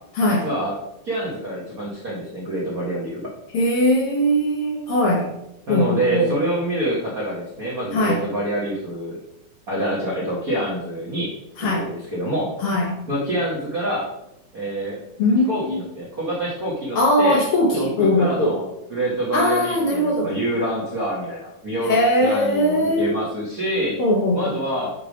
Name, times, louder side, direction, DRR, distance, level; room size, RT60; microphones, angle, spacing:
voice 1, 0.4-0.7 1.0-3.2 5.7-9.2 9.7-12.5 13.1-14.1 14.5-15.0 15.5-17.5 17.7-24.0 24.3-24.9, right 1 dB, 65° right, -5 dB, 0.9 m, -26 dB
voice 2, 3.5-5.3 5.7-6.3 7.9-8.2 11.6-11.8 12.6-13.0 15.2-15.8 16.9-18.6 19.3-20.3 21.8-23.2 24.0-24.5, left 1 dB, 75° left, 0 dB, 1.2 m, -20 dB
7.0 x 3.3 x 5.0 m, 0.84 s
omnidirectional pair, 3.5 m